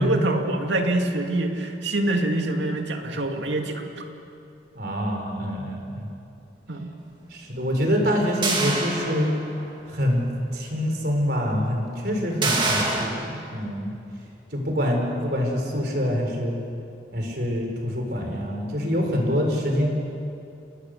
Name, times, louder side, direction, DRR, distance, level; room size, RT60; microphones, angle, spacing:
voice 1, 0.0-4.0 6.7-6.9, right 2 dB, 80° right, 3 dB, 2.3 m, -25 dB
voice 2, 4.7-6.1 7.3-9.3 9.9-10.2 10.5-14.0 14.5-16.5 17.1-19.9, equal, 55° right, 2 dB, 4.4 m, -25 dB
sound 1, 8.4-9.7 10.1-10.2 12.4-13.1, right 3 dB, 25° right, 2.6 m, -25 dB
29.5 x 19.5 x 6.6 m, 2.6 s
head